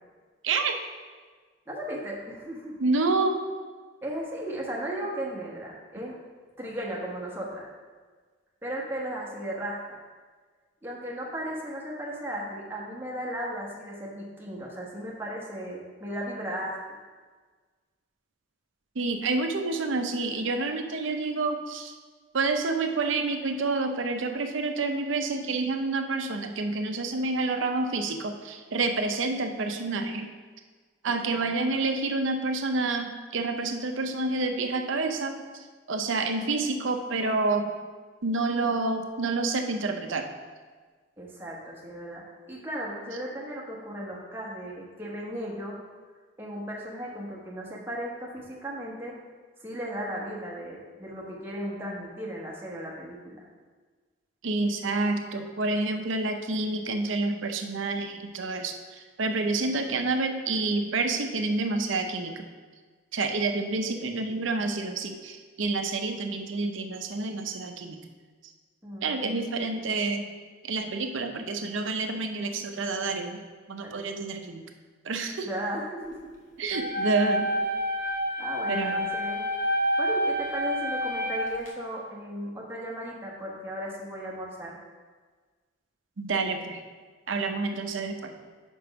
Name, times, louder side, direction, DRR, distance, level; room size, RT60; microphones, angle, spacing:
voice 1, 0.4-0.8 2.8-3.4 19.0-21.9 22.3-30.3 31.0-35.3 35.9-37.7 38.2-40.3 54.4-58.8 59.2-62.4 63.1-68.0 69.0-70.2 70.6-73.4 73.7-74.6 75.0-75.5 76.6-77.5 78.7-79.1 86.2-86.8 87.3-88.3, right 3 dB, 75° right, 5 dB, 0.6 m, -28 dB
voice 2, 1.7-2.8 4.0-6.2 6.6-7.7 8.6-10.0 10.8-17.0 31.0-31.8 41.2-45.8 46.4-49.1 49.6-53.5 68.8-69.5 73.8-73.9 75.4-76.2 76.9-77.1 78.4-79.4 80.0-84.8 87.5-87.6, equal, 10° right, -4 dB, 1.1 m, -36 dB
sound 1, 76.7-81.7, equal, 40° left, 1.0 m, -28 dB
5.3 x 5.1 x 5.8 m, 1.5 s
head